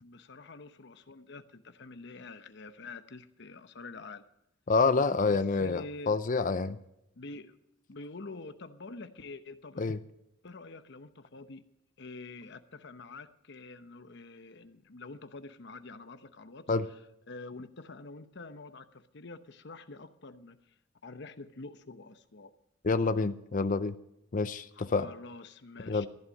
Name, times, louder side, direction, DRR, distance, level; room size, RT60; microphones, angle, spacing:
voice 1, 0.0-4.2 5.2-6.2 7.2-7.6 7.9-9.9 10.4-11.6 12.0-17.0 17.3-20.6 21.0-22.5 24.7-26.1, left 3 dB, 60° left, 10 dB, 0.9 m, -46 dB
voice 2, 4.7-6.8 9.8-10.0 16.7-16.9 22.8-23.9 24.3-25.1 25.9-26.1, left 4 dB, 40° left, 12 dB, 0.5 m, -27 dB
15.0 x 11.0 x 5.3 m, 0.82 s
head